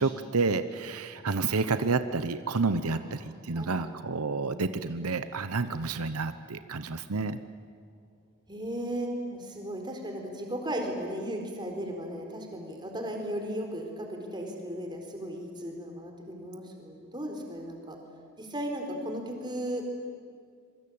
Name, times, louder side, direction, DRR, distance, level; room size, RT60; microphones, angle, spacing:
voice 1, 0.0-7.4, right 4 dB, 85° right, 11 dB, 0.9 m, -29 dB
voice 2, 2.9-3.3 3.5-4.0 8.5-18.0 18.4-19.8, equal, 20° right, 2 dB, 4.2 m, -36 dB
26.0 x 24.0 x 8.8 m, 2.2 s
head